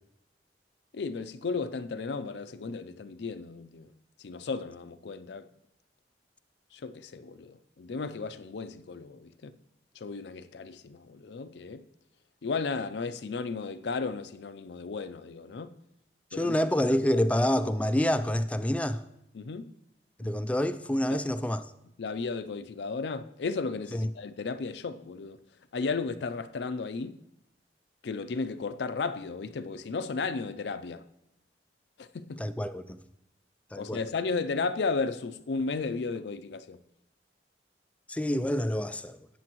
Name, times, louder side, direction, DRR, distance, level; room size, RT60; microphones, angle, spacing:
voice 1, 0.9-3.9 4.2-5.5 6.7-9.5 10.0-11.8 12.4-15.8 16.3-16.6 19.3-19.7 20.2-20.3 21.1-21.2 22.0-25.4 25.7-27.2 28.0-31.0 32.0-32.4 33.7-36.8, left 4 dB, 75° left, 0.5 m, -34 dB
voice 2, 16.3-19.0 20.2-21.6 23.9-24.1 32.4-33.0 33.7-34.0 38.1-39.2, left 1 dB, 10° left, 0.3 m, -27 dB
13.5 x 8.7 x 3.0 m
head